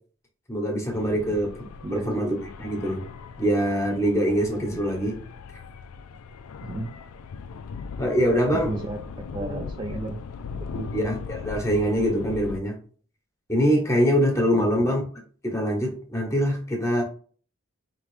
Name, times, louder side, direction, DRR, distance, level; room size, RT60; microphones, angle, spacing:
voice 1, 0.5-3.1 3.4-5.2 8.0-8.7 9.4-9.6 10.9-12.8 13.5-15.0 15.4-17.0, equal, 15° left, 1 dB, 1.0 m, -24 dB
sound 1, 0.9-12.6, left 5 dB, 85° left, 0.4 m, -39 dB
voice 2, 1.8-2.2 6.6-7.0 8.5-9.0 9.3-10.2 10.6-10.9 14.5-14.7, right 2 dB, 20° right, 2 dB, 0.3 m, -33 dB
5.1 x 3.0 x 3.1 m, 0.43 s
head